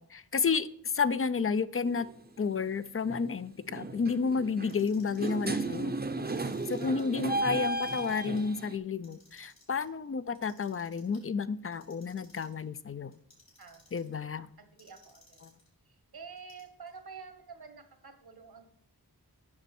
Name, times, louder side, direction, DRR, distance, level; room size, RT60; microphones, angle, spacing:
voice 1, 0.0-2.1 2.4-6.0 6.7-13.1 13.9-14.5, left 5 dB, 35° left, 15 dB, 0.4 m, -31 dB
sound 1, 1.9-2.1 3.1-3.3 3.7-8.8, right 2 dB, 25° right, 0.7 m, -35 dB
Clock, 4.6-5.4 6.1-7.0 7.5-8.4 8.9-9.8 10.3-11.2 11.7-12.6 13.1-14.2 14.8-15.7 16.4-17.0, left 2 dB, 65° left, 3.9 m, -60 dB
voice 2, 6.8-7.1 7.4-7.5 13.6-14.0 14.6-15.5 15.9-18.7, right 5 dB, 75° right, 7 dB, 1.4 m, -49 dB
8.6 x 6.1 x 4.3 m, 0.66 s
wide cardioid pair, 60°, 37 cm